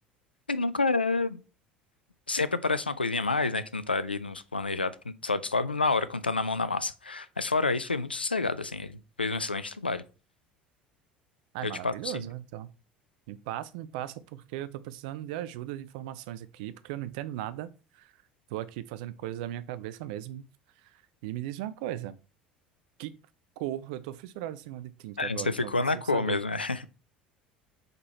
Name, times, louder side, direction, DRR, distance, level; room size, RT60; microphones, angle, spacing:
voice 1, 0.5-1.4 2.3-10.0 11.6-12.3 25.2-26.8, left 3 dB, 90° left, 0.4 m, -29 dB
voice 2, 11.5-12.7 13.3-17.7 17.9-18.1 18.5-20.5 20.8-22.2 23.0-23.2 23.6-25.7 26.1-26.4, right 13 dB, 60° right, 0.5 m, -37 dB
5.2 x 4.3 x 4.1 m
figure-of-eight pair, 65°, 5 cm